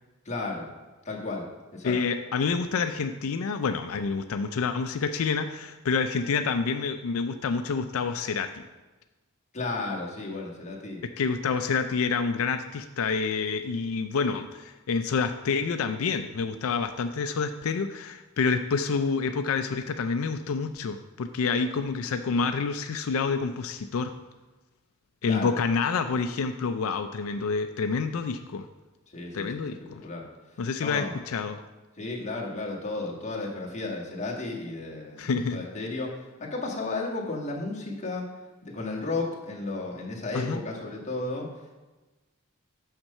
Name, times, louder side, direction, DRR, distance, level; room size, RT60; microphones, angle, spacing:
voice 1, 0.2-0.7 1.0-1.4 1.7-2.0 9.5-11.0 25.2-25.5 29.1-30.2 30.8-31.2 32.0-36.1 36.4-38.2 38.6-41.5, left 2 dB, 35° left, -3 dB, 1.6 m, -33 dB
voice 2, 1.8-8.6 11.0-24.1 25.2-28.7 29.3-30.0 30.6-31.6 35.2-35.6 40.3-40.6, left 5 dB, 90° left, 8 dB, 0.4 m, -28 dB
6.6 x 5.9 x 5.4 m, 1.2 s
head